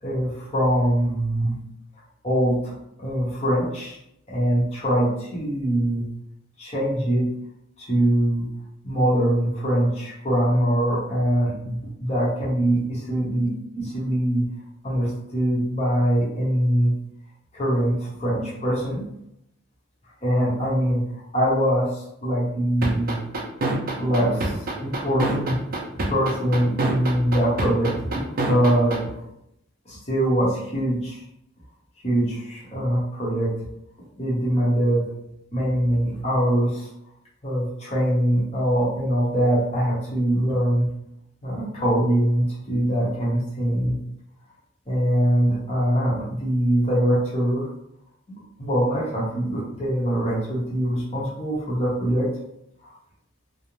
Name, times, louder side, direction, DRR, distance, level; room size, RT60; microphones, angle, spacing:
voice 1, 0.0-1.6 2.2-2.7 3.0-4.0 4.3-6.1 6.6-7.3 7.8-8.4 8.8-14.4 14.8-16.9 17.5-19.0 20.2-21.0 21.3-23.2 24.0-25.6 26.1-29.2 29.9-31.2 32.0-33.5 34.2-35.0 35.5-36.9 37.4-40.9 41.4-44.0 44.9-47.7 48.6-52.3 52.8-52.9, right 1 dB, 30° left, -7 dB, 0.8 m, -23 dB
sound 1, 22.8-29.0, right 2 dB, 45° right, 0.5 m, -25 dB
2.5 x 2.0 x 2.9 m, 0.78 s
head